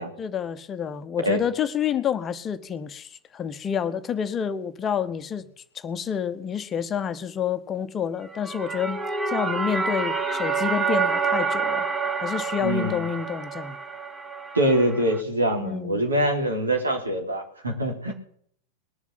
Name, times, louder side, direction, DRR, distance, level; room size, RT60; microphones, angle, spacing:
voice 1, 0.2-5.5 5.7-11.9 12.2-13.8 15.6-16.0 18.1-18.2, left 8 dB, 25° left, 1.0 m, -28 dB
sound 1, 8.3-15.2, right 5 dB, 15° right, 1.5 m, -28 dB
voice 2, 12.6-13.0 14.5-18.1, right 1 dB, 75° right, 3.6 m, -24 dB
21.0 x 7.3 x 7.5 m
figure-of-eight pair, 90°, 0 cm